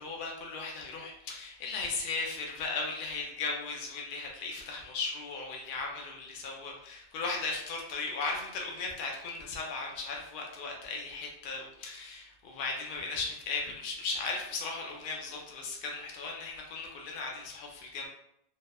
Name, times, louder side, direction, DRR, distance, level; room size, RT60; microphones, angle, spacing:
voice 1, 0.0-18.1, left 4 dB, 60° left, 0 dB, 0.6 m, -37 dB
2.9 x 2.0 x 2.2 m, 0.77 s
omnidirectional pair, 1.1 m